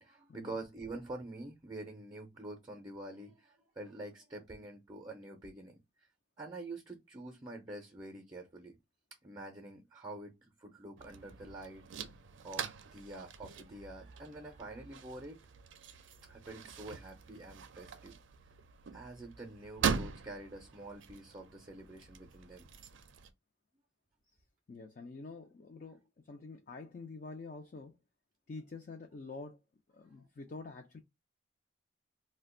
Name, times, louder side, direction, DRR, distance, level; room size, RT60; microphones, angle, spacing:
voice 1, 0.0-6.1 6.4-8.8 9.2-11.8 12.4-15.4 16.3-18.1 18.9-22.7 30.2-30.3, right 2 dB, 20° right, 0.5 m, -47 dB
sound 1, 11.0-23.3, right 6 dB, 75° right, 0.4 m, -42 dB
voice 2, 24.7-26.0 26.3-28.0 28.5-29.6 29.9-31.0, left 3 dB, 45° left, 0.4 m, -47 dB
2.4 x 2.2 x 3.6 m
head